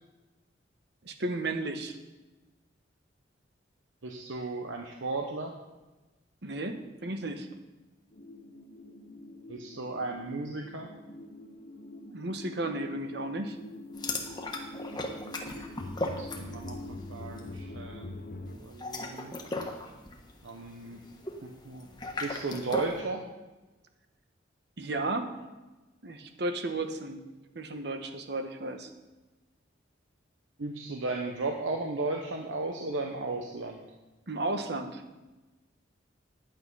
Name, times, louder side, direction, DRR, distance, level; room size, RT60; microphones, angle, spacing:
voice 1, 1.0-2.0 6.4-7.5 12.1-13.6 24.8-25.3 26.0-27.2 27.5-28.9 34.3-35.0, right 2 dB, 60° right, 7 dB, 1.1 m, -33 dB
voice 2, 4.0-5.6 9.5-10.9 16.2-16.8 17.1-18.2 18.5-19.3 20.4-21.0 21.4-21.9 22.2-23.2 30.6-33.9, right 3 dB, 90° right, 2 dB, 1.0 m, -35 dB
sound 1, 8.1-18.6, left 2 dB, 45° left, 0.8 m, -44 dB
sound 2, 13.9-16.9 17.1-17.5 18.6-23.0, left 2 dB, 20° left, 1.1 m, -37 dB
10.0 x 9.0 x 5.5 m, 1.1 s
head